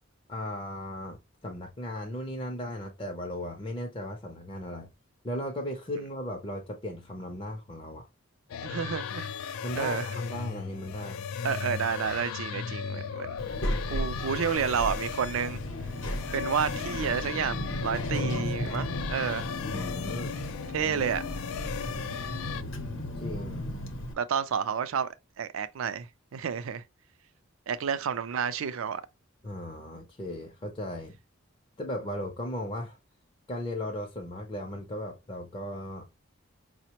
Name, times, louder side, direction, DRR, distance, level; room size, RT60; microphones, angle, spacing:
voice 1, 0.3-4.9 5.2-8.0 9.6-11.3 19.7-20.4 23.2-23.7 29.4-31.2 31.8-33.0 33.5-36.1, left 1 dB, 25° left, 0.5 m, -36 dB
sound 1, 8.5-22.6, left 7 dB, 80° left, 0.3 m, -36 dB
voice 2, 8.6-9.3 9.8-10.1 11.4-13.4 13.9-15.6 16.3-17.6 17.8-19.5 20.7-21.2 24.2-25.1 25.4-26.8 27.7-29.0, right 7 dB, 70° right, 0.4 m, -30 dB
Child speech kid speaking, 13.4-24.1, equal, 65° left, 0.7 m, -35 dB
4.9 x 2.1 x 2.8 m
head